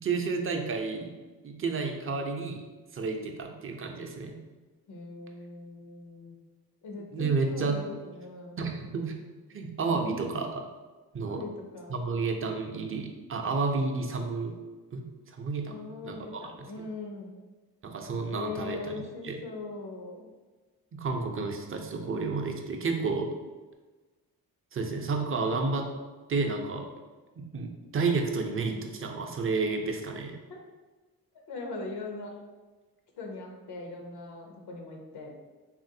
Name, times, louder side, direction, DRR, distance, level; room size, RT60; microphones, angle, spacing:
voice 1, 0.0-1.1 1.4-2.6 2.9-4.4 7.1-7.9 8.6-9.2 9.5-10.6 11.1-11.4 11.9-14.6 14.9-15.0 15.4-16.4 17.8-19.4 20.9-23.3 24.7-25.9 26.3-26.9 27.5-30.4, right 4 dB, 35° right, 3 dB, 0.5 m, -31 dB
voice 2, 4.9-6.4 6.8-8.6 9.9-10.2 11.2-12.0 15.7-17.4 18.3-20.3 30.5-30.6 31.5-32.3 33.2-35.3, left 3 dB, 80° left, 1 dB, 0.6 m, -40 dB
3.1 x 2.5 x 2.7 m, 1.3 s
cardioid pair, 50°, 39 cm